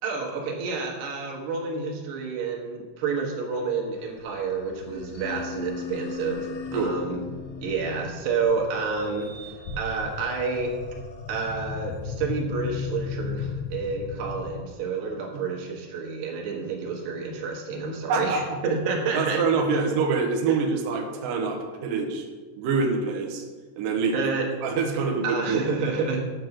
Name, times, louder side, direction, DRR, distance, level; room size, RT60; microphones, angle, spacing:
voice 1, 0.0-7.2 7.6-10.7 11.3-19.4 19.7-19.8 20.5-20.6 24.1-24.5 25.0-26.2, right 4 dB, 65° right, -1 dB, 3.3 m, -29 dB
sound 1, 4.0-14.6, left 6 dB, 75° left, 3.8 m, -37 dB
sound 2, 4.8-8.5, left 6 dB, 55° left, 1.9 m, -38 dB
voice 2, 18.1-18.6 19.1-22.3 22.5-23.4 23.8-24.2 24.6-25.7, right 4 dB, 85° right, 2 dB, 1.9 m, -25 dB
8.5 x 7.8 x 6.6 m, 1.4 s
omnidirectional pair, 5.8 m